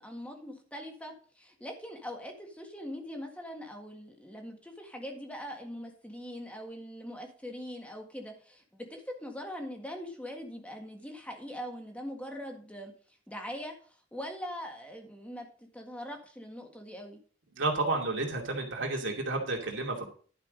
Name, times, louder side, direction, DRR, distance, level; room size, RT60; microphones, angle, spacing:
voice 1, 0.0-12.9 13.3-17.2, equal, 5° left, 3 dB, 1.7 m, -42 dB
voice 2, 17.6-20.1, right 2 dB, 65° right, 1 dB, 2.5 m, -31 dB
11.5 x 5.8 x 5.2 m, 0.42 s
head